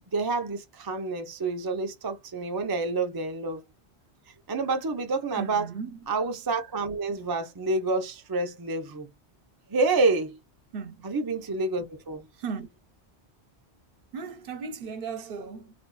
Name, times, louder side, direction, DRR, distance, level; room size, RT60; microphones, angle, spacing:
voice 1, 0.1-3.6 4.5-5.7 6.1-9.1 9.7-10.4 11.0-12.3, right 3 dB, 35° right, 0.3 m, -28 dB
voice 2, 5.4-6.0 10.7-11.1 12.3-12.7 14.1-15.7, right 5 dB, 60° right, 0.8 m, -36 dB
2.5 x 2.3 x 3.8 m
omnidirectional pair, 1.1 m